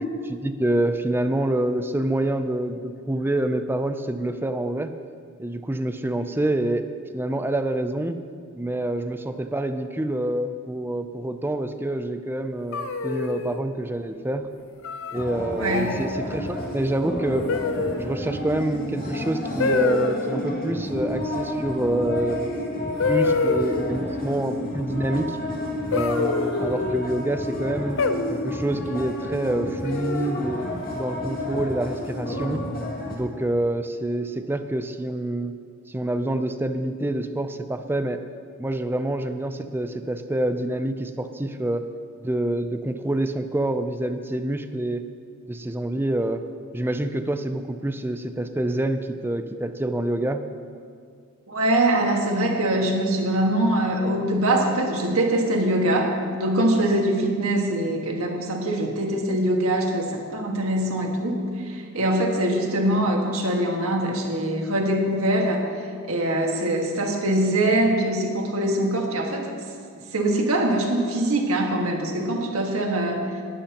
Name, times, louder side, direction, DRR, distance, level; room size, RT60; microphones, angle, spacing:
voice 1, 0.3-4.9 5.4-6.8 7.1-8.2 8.6-14.5 15.1-17.5 17.9-22.7 23.1-25.4 25.9-28.0 28.3-32.6 33.1-35.5 35.9-38.2 38.6-41.8 42.2-45.0 45.5-46.4 46.7-50.4, right 1 dB, 10° right, 8 dB, 0.5 m, -27 dB
sound 1, 12.7-13.6 14.8-15.2 15.7-16.1 17.5-18.1 19.6-20.2 22.1-22.2 23.0-24.0 25.9-27.0 28.0-28.6 29.8-30.4, left 4 dB, 60° left, 0.7 m, -26 dB
sound 2, 15.1-33.2, left 1 dB, 45° left, 2.2 m, -31 dB
voice 2, 15.6-16.0 51.5-65.7 66.1-69.5 70.1-73.3, right 1 dB, 75° right, 1 dB, 1.7 m, -23 dB
19.0 x 11.5 x 3.0 m, 2.3 s
head